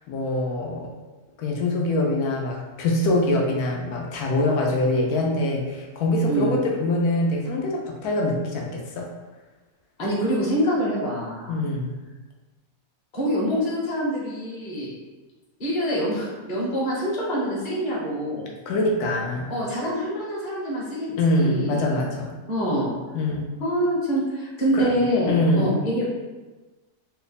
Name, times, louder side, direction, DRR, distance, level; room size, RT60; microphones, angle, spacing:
voice 1, 0.1-0.9 1.4-9.1 11.5-11.9 18.7-19.5 21.1-22.3 23.1-23.5 24.7-24.9 25.3-25.7, left 1 dB, 85° left, 0 dB, 1.1 m, -24 dB
voice 2, 10.0-11.6 13.1-14.9 15.6-18.5 19.5-21.9 22.5-22.9 23.6-26.0, equal, 40° left, -6 dB, 1.0 m, -25 dB
3.0 x 2.1 x 3.9 m, 1.2 s
omnidirectional pair, 1.6 m